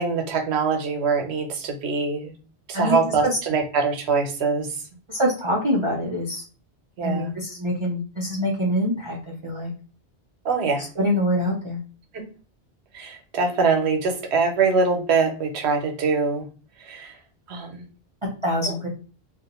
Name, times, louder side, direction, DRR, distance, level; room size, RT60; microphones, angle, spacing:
voice 1, 0.0-2.3 2.7-4.7 7.0-7.3 10.4-10.8 12.1-12.2 12.9-16.4 16.8-17.1 17.5-17.8, right 4 dB, 85° right, 5 dB, 0.9 m, -23 dB
voice 2, 2.7-3.4 5.1-6.4 7.0-9.2 9.4-9.7 10.8-11.8 18.2-18.9, equal, 45° right, -3 dB, 0.4 m, -25 dB
2.4 x 2.1 x 2.8 m, 0.38 s
omnidirectional pair, 1.1 m